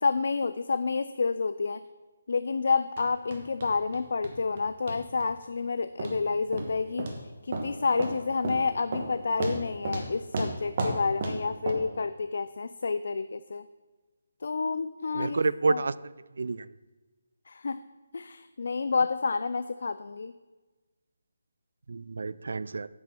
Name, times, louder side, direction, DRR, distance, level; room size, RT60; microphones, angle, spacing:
voice 1, 0.0-1.8 2.3-13.6 14.4-15.4 15.7-15.8 17.5-17.8 18.1-20.3, left 4 dB, 55° left, 12 dB, 0.3 m, -29 dB
sound 1, 3.0-3.1 3.3-4.0 4.2-4.6 4.9-5.3 6.0-6.2 6.5-6.7 7.0-7.2 7.5-7.7 8.0-8.2 8.4-8.6 8.9-9.1 9.4-10.1 10.3-11.4 11.7-11.8, right 2 dB, 30° right, 1.2 m, -32 dB
voice 2, 15.1-15.9 16.4-16.7 21.9-22.9, right 3 dB, 60° right, 18 dB, 0.3 m, -28 dB
8.9 x 6.2 x 6.0 m, 1.2 s
hypercardioid pair, 175°, 0 cm